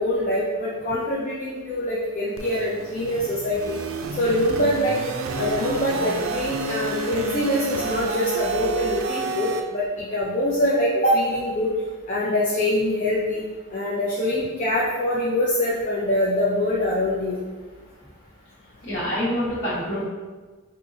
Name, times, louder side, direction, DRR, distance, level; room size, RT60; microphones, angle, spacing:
voice 1, 0.0-3.8 4.2-5.0 5.4-11.7 12.1-13.4 13.7-17.4, left 1 dB, 40° left, -7 dB, 0.5 m, -24 dB
sound 1, 2.4-9.6, right 4 dB, 80° right, 0.4 m, -30 dB
voice 2, 18.8-20.1, equal, 60° left, -7 dB, 1.4 m, -26 dB
4.4 x 2.7 x 2.7 m, 1.3 s
head